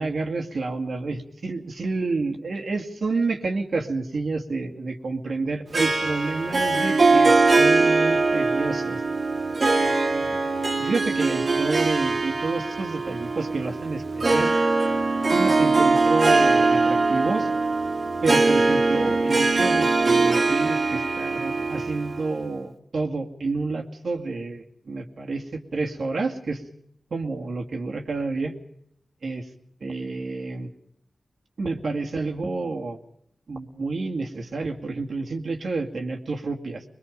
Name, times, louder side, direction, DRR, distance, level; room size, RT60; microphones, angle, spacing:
voice 1, 0.0-9.0 9.7-10.4 10.8-14.6 15.3-17.5 18.2-26.6 27.1-28.5 29.2-29.5 29.8-30.7 31.6-33.0 33.5-36.8, right 3 dB, 75° right, 2 dB, 2.3 m, -29 dB
Harp, 5.7-22.5, right 3 dB, 60° right, 1.7 m, -22 dB
22.5 x 22.0 x 5.3 m, 0.73 s
cardioid pair, 55°, 0 cm